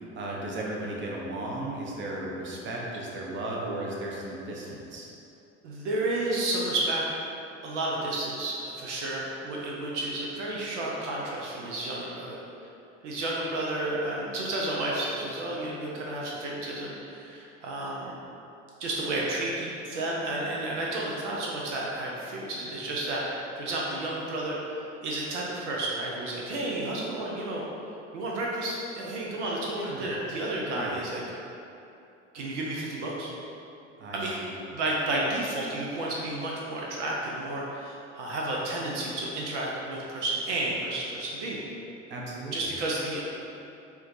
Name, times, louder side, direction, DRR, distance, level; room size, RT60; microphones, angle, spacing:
voice 1, 0.0-5.1 29.8-30.1 30.7-31.0 34.0-34.6 42.1-42.7, right 1 dB, 35° right, -3 dB, 0.7 m, -35 dB
voice 2, 5.6-7.0 7.6-12.4 13.0-18.2 18.8-24.6 25.0-27.6 28.1-31.2 32.3-33.3 34.1-34.3 34.7-41.6 42.5-43.2, right 2 dB, 80° right, -4 dB, 0.6 m, -31 dB
4.4 x 2.2 x 2.5 m, 2.7 s
hypercardioid pair, 60°, 35 cm